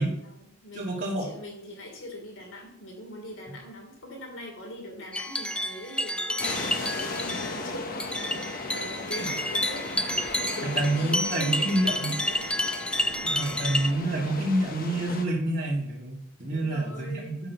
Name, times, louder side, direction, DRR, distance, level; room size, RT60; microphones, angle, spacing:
voice 1, 0.2-9.8 10.6-12.4 13.1-13.2 16.5-17.4, left 1 dB, 80° left, 1 dB, 3.3 m, -42 dB
voice 2, 0.7-1.3 9.2-9.3 10.6-12.2 13.2-17.5, right 1 dB, 40° right, -7 dB, 2.6 m, -28 dB
sound 1, 5.1-13.9, equal, 5° left, 0.7 m, -30 dB
sound 2, 6.4-15.3, left 3 dB, 45° left, 1.4 m, -36 dB
10.5 x 7.4 x 6.0 m, 0.75 s
head